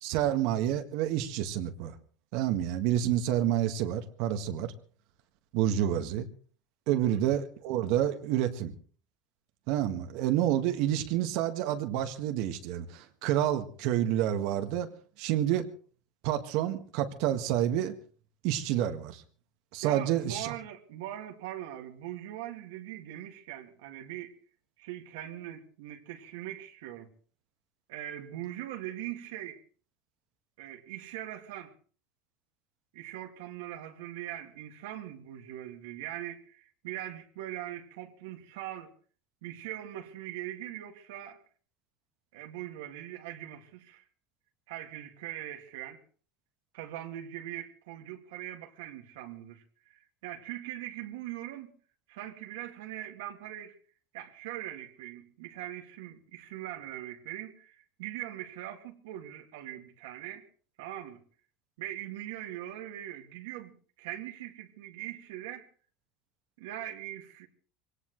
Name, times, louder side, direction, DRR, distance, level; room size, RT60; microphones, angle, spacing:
voice 1, 0.0-1.9 2.3-4.7 5.5-6.3 6.9-8.7 9.7-14.9 15.2-15.7 16.2-17.9 18.4-19.2 19.7-20.5, right 11 dB, 70° right, 1.7 m, -29 dB
voice 2, 6.9-7.2 19.8-24.4 24.8-27.1 27.9-29.6 30.6-31.7 32.9-38.9 39.4-41.4 42.3-44.0 44.7-46.0 46.7-51.7 52.1-53.8 54.1-60.5 60.8-61.2 61.8-65.7 66.6-67.5, right 13 dB, 85° right, 2.1 m, -41 dB
23.5 x 18.0 x 3.2 m
supercardioid pair, 125°, 0 cm